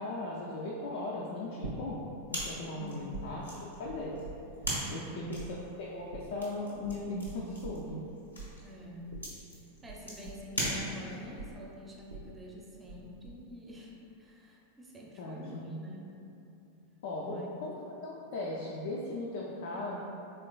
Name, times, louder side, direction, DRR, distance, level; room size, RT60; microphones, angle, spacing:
voice 1, 0.0-2.0 2.3-3.4 3.8-4.2 4.9-8.0 15.2-15.8 17.0-20.0, left 2 dB, 55° left, -4 dB, 0.4 m, -38 dB
sound 1, 1.6-2.5 2.7-5.1 5.4-13.0 13.3-13.8, right 3 dB, 70° right, 0.4 m, -45 dB
sound 2, 2.3-11.3, equal, 80° left, 0.7 m, -40 dB
voice 2, 2.6-3.4 4.8-5.3 8.6-9.1 9.5-16.1 17.2-17.5, left 1 dB, 15° right, -2 dB, 0.5 m, -47 dB
3.6 x 3.3 x 2.2 m, 2.7 s
figure-of-eight pair, 90°, 0 cm